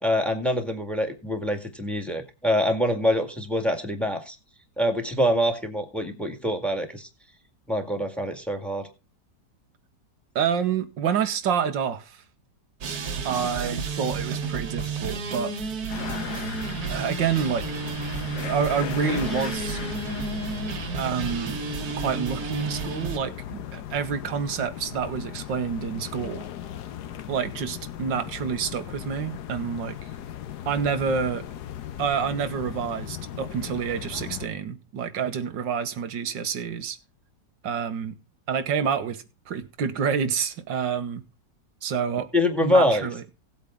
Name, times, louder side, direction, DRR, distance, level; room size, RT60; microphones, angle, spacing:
voice 1, 0.0-4.4 4.8-7.1 7.7-8.9 42.3-43.1, left 1 dB, ahead, 1.8 m, -25 dB
voice 2, 10.4-12.2 13.2-15.5 16.9-17.7 18.4-19.8 20.9-21.6 22.0-26.5 27.3-30.0 30.7-31.4 32.0-37.0 37.6-38.2 38.5-41.2 41.8-42.3 42.6-43.2, right 7 dB, 90° right, 1.9 m, -28 dB
sound 1, 12.8-23.2, right 5 dB, 60° right, 1.6 m, -32 dB
sound 2, 15.9-34.5, left 10 dB, 70° left, 1.3 m, -37 dB
17.5 x 8.3 x 3.7 m
omnidirectional pair, 1.9 m